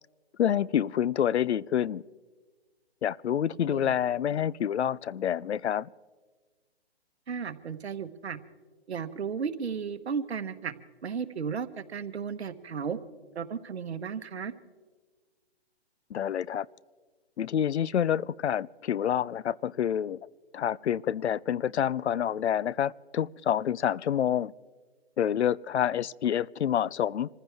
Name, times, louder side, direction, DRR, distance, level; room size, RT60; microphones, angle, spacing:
voice 1, 0.4-2.0 3.0-5.9 16.1-16.7 17.4-20.2 20.5-24.5 25.2-27.3, left 9 dB, 85° left, 0.5 m, -27 dB
voice 2, 7.3-8.4 8.9-10.7 11.0-13.0 13.3-14.5, right 6 dB, 75° right, 1.3 m, -34 dB
26.5 x 15.0 x 3.5 m
hypercardioid pair, 155°, 33 cm